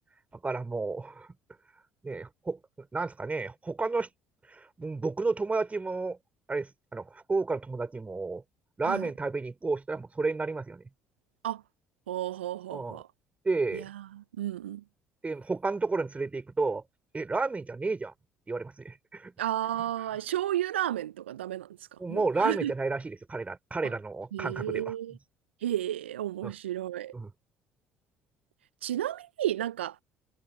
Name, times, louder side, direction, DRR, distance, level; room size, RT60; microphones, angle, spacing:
voice 1, 0.4-1.3 2.0-4.1 4.5-6.2 6.5-8.4 8.8-10.8 12.7-13.0 13.4-13.9 15.2-16.8 17.1-18.1 18.5-19.3 22.0-24.9 26.4-26.5 27.1-27.3, right 3 dB, 25° right, 4.8 m, -31 dB
voice 2, 12.1-13.1 14.1-14.8 19.4-21.7 22.1-22.7 24.3-25.1 25.6-27.1 28.8-30.0, right 12 dB, 85° right, 0.5 m, -32 dB
hypercardioid pair, 55°, 6 cm